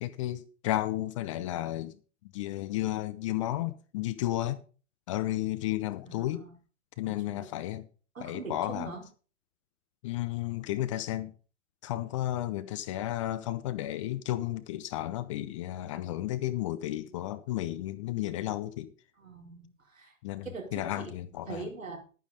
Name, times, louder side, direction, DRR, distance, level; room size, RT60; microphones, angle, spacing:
voice 1, 0.0-2.0 2.3-4.6 5.1-6.5 7.0-7.9 8.2-8.9 10.0-11.3 11.8-18.9 20.2-21.7, left 14 dB, 25° left, 0.4 m, -33 dB
voice 2, 6.1-6.5 7.3-7.5 8.1-9.0 19.2-20.1 20.4-21.1 21.5-22.0, right 4 dB, 75° right, 4.4 m, -42 dB
11.0 x 9.2 x 5.1 m
figure-of-eight pair, 105°, 39 cm